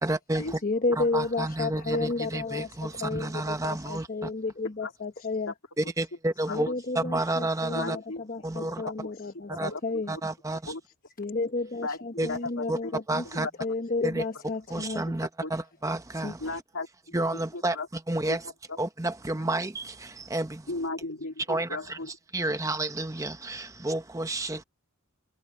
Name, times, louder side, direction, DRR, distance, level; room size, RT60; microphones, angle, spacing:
voice 1, 0.0-0.6 0.9-4.3 5.8-6.7 6.9-8.0 8.4-8.8 9.5-9.7 10.1-10.7 12.2-12.3 12.7-12.8 13.1-13.5 14.0-14.3 14.7-16.5 17.1-18.5 18.8-20.7 21.5-24.6, right 2 dB, 15° right, 0.9 m, -30 dB
voice 2, 0.6-2.7 3.0-5.5 6.5-8.0 8.3-10.1 11.2-15.1 16.2-16.3, left 3 dB, 40° left, 1.1 m, -31 dB
voice 3, 7.7-8.2 8.8-9.1 9.7-10.0 10.7-10.8 11.8-12.9 13.6-13.7 15.4-15.5 16.4-17.1 17.5-17.9 18.7-18.8 20.7-22.1, left 3 dB, 70° left, 2.7 m, -36 dB
head